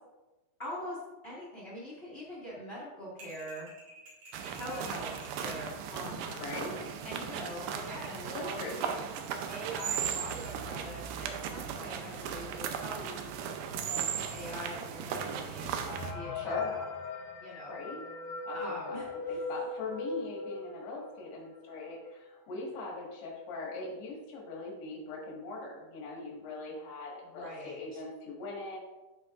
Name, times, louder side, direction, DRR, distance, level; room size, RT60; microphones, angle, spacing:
voice 1, 0.6-1.0 1.2-3.7 4.5-6.7 7.0-8.9 9.5-15.8 16.1-16.8 17.4-17.8 18.5-19.4 27.3-28.0, equal, 45° left, -7 dB, 0.7 m, -43 dB
sound 1, 3.2-5.7, equal, 70° right, 4.1 m, -52 dB
sound 2, 4.3-16.1, right 8 dB, 85° right, 2.7 m, -37 dB
voice 2, 6.4-7.0 8.3-9.0 16.3-16.7 17.7-18.0 18.5-18.6 18.9-28.8, left 2 dB, 90° left, -3 dB, 3.8 m, -41 dB
sound 3, 15.8-21.2 21.7-21.8 22.0-22.1 22.9-23.0 23.3-23.7, left 4 dB, 70° left, 2.5 m, -39 dB
13.5 x 4.5 x 2.5 m, 1.1 s
omnidirectional pair, 4.5 m